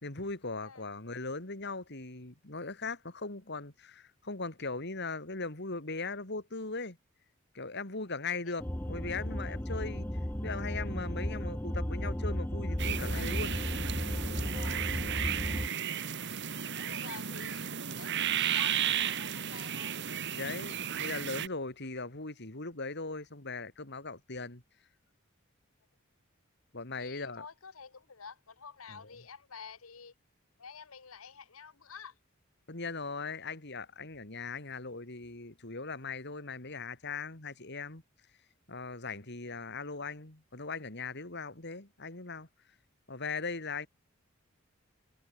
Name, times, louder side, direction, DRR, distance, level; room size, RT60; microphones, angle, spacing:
voice 1, 0.0-7.0 7.6-10.1 10.4-13.5 20.3-24.6 26.7-27.5 28.9-29.2 32.7-38.0 38.7-42.5 43.1-43.9, left 3 dB, 55° left, 3.4 m, -39 dB
sound 1, 8.6-15.7, equal, 10° left, 0.9 m, -34 dB
sound 2, 12.8-21.5, right 9 dB, 60° right, 2.1 m, -34 dB
voice 2, 14.5-14.8 16.7-20.0 27.0-30.1 30.6-32.1, left 6 dB, 90° left, 1.3 m, -49 dB
head